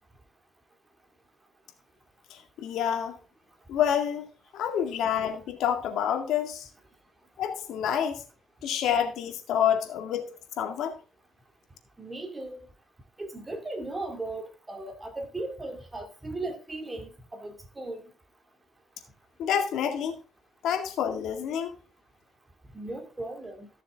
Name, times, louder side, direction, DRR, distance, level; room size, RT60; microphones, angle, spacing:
voice 1, 2.3-3.2 3.7-4.3 4.5-6.7 7.4-8.2 8.6-11.0 19.4-20.2 20.6-21.8, left 9 dB, 80° left, 2.0 m, -28 dB
voice 2, 12.0-12.7 13.2-18.1 22.6-23.7, right 2 dB, 20° right, 2.5 m, -37 dB
14.5 x 6.9 x 3.6 m
cardioid pair, 90°, 0 cm